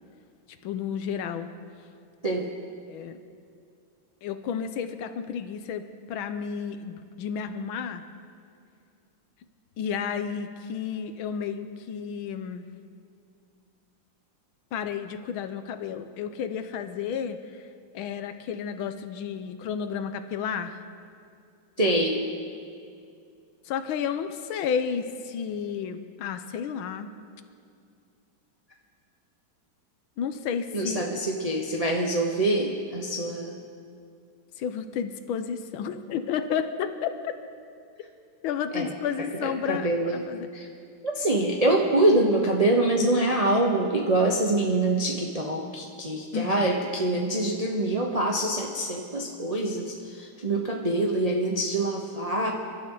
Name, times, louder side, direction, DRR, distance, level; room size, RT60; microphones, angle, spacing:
voice 1, 0.6-1.5 2.9-3.2 4.2-8.0 9.8-12.6 14.7-17.4 17.9-20.8 23.6-27.1 30.2-31.0 34.6-37.3 38.4-40.5 46.3-46.7, left 7 dB, 85° left, 9 dB, 1.6 m, -32 dB
voice 2, 21.8-22.2 30.7-33.6 38.7-38.9 39.4-40.3 40.5-40.7 41.0-52.5, right 2 dB, 25° right, -1 dB, 0.8 m, -25 dB
29.5 x 12.0 x 3.9 m, 2.3 s
omnidirectional pair, 2.2 m